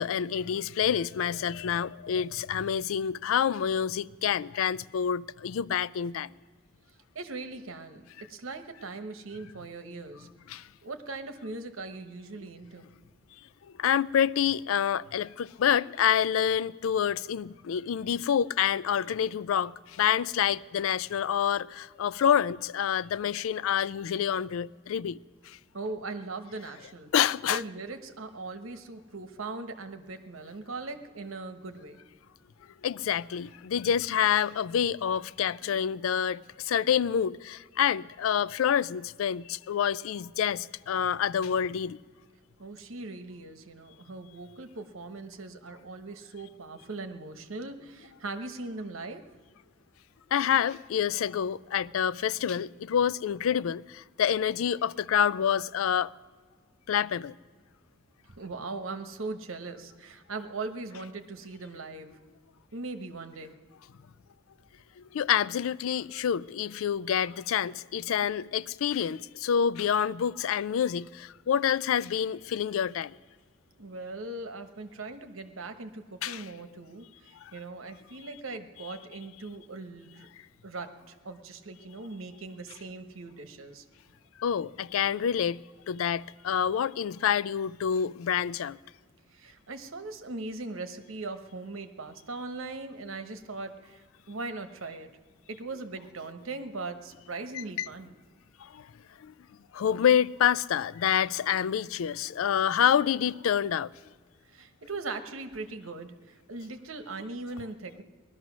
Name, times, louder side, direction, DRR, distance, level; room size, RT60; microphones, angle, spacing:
voice 1, 0.0-6.3 10.5-10.7 13.8-25.2 25.4-25.6 27.1-27.6 32.8-42.0 50.3-56.1 56.9-57.3 65.0-73.2 76.2-76.4 77.4-77.5 84.4-88.8 97.5-97.9 98.6-98.9 99.2-99.3 99.7-103.9, left 8 dB, 80° left, 0.4 m, -27 dB
voice 2, 7.1-10.3 10.8-12.8 25.7-27.1 27.5-32.0 42.6-49.2 58.3-62.2 62.7-63.5 73.8-80.3 80.6-83.8 89.3-95.1 95.5-98.1 104.5-108.0, right 3 dB, 80° right, 1.1 m, -40 dB
19.0 x 12.5 x 6.1 m
head